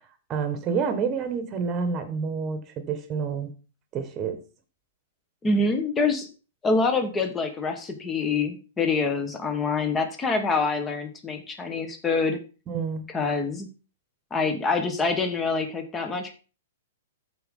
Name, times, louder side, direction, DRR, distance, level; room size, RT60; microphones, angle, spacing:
voice 1, 0.3-3.5 3.9-4.4 12.7-13.0, right 5 dB, 20° right, 8 dB, 1.5 m, -28 dB
voice 2, 5.4-6.3 6.6-12.4 13.1-13.7 14.3-16.3, left 4 dB, 10° left, 6 dB, 1.2 m, -26 dB
14.0 x 4.9 x 3.7 m, 0.36 s
hypercardioid pair, 165°, 0 cm